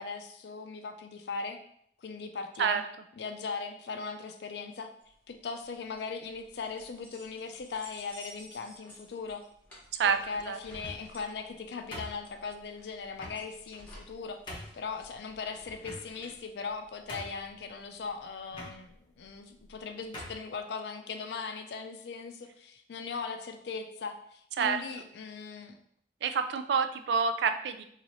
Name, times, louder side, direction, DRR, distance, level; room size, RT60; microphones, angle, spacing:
voice 1, 0.0-1.6 2.0-2.8 3.2-4.9 5.3-9.5 10.0-25.8, left 4 dB, 65° left, 6 dB, 0.4 m, -39 dB
sound 1, 5.0-16.3, equal, 10° left, 1.2 m, -54 dB
sound 2, 10.7-11.2 11.9-12.6 13.2-13.4 14.0-14.1 14.5-14.8 15.8-16.4 16.7-16.8 17.1-17.6 18.5-18.7 19.6-19.7 20.1-20.4, left 1 dB, 25° left, 0.9 m, -42 dB
voice 2, 26.2-27.8, right 6 dB, 70° right, 9 dB, 0.3 m, -27 dB
3.0 x 2.4 x 4.1 m, 0.68 s
head